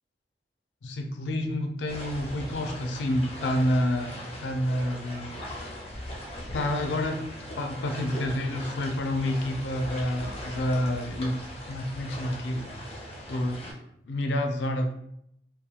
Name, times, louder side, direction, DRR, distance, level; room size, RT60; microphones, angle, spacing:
voice 1, 0.8-5.4 6.5-11.4 11.7-12.7 13.3-13.7 14.1-14.9, left 1 dB, 80° left, 4 dB, 0.4 m, -29 dB
sound 1, 1.9-13.7, equal, 35° left, 0.6 m, -39 dB
2.8 x 2.2 x 2.4 m, 0.75 s
head